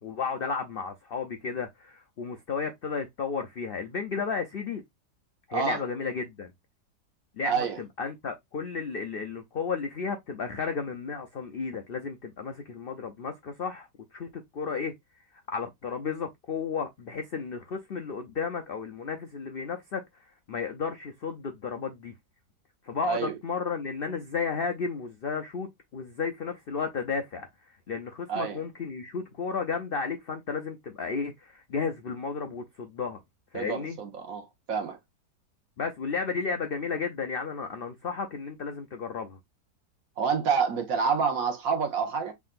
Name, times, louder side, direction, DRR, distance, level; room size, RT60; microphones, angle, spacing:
voice 1, 0.0-4.8 5.5-6.5 7.3-14.9 15.3-22.1 22.8-27.5 27.9-33.2 33.5-34.0 35.8-39.4, left 5 dB, 80° left, 0.5 m, -33 dB
voice 2, 7.4-7.8 23.0-23.3 28.3-28.6 33.5-35.0 40.2-42.3, right 6 dB, 60° right, 1.2 m, -28 dB
5.8 x 3.6 x 2.5 m
omnidirectional pair, 1.8 m